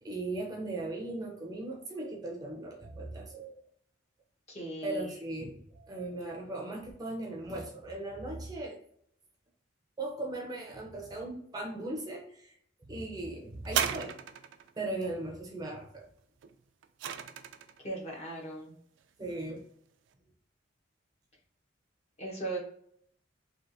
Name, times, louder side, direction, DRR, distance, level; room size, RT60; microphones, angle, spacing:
voice 1, 0.0-3.6 4.8-8.8 10.0-14.2 14.8-16.1 19.2-19.6, right 2 dB, 20° right, 0 dB, 0.5 m, -38 dB
voice 2, 4.5-5.1 14.9-15.0 17.8-18.7 22.2-22.6, right 2 dB, 35° left, -3 dB, 1.1 m, -38 dB
sound 1, 13.6-14.7 16.4-17.8 18.6-18.7, right 8 dB, 70° right, 0.3 m, -34 dB
3.3 x 3.0 x 2.6 m, 0.68 s
head